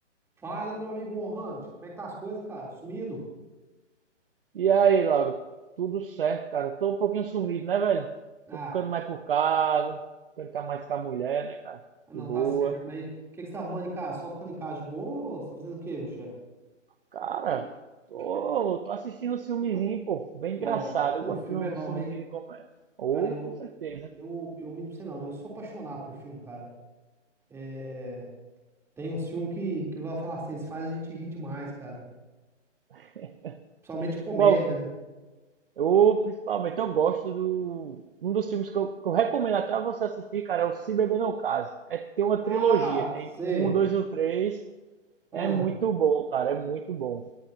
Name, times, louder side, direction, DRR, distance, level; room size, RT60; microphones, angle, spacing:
voice 1, 0.4-3.2 8.5-8.8 12.1-13.1 13.3-16.3 20.6-22.2 23.1-23.6 24.1-26.7 27.5-28.3 29.0-32.0 33.8-34.9 42.4-43.8 45.3-45.7, right 2 dB, 5° right, -3 dB, 3.5 m, -35 dB
voice 2, 4.5-5.4 5.8-8.1 8.7-10.0 10.4-11.8 12.1-12.8 17.1-17.7 18.1-22.6 23.0-24.1 32.9-33.6 34.4-34.6 35.8-44.6 45.3-47.2, right 7 dB, 50° right, 9 dB, 0.8 m, -27 dB
22.0 x 14.0 x 2.9 m, 1.2 s
figure-of-eight pair, 145°, 37 cm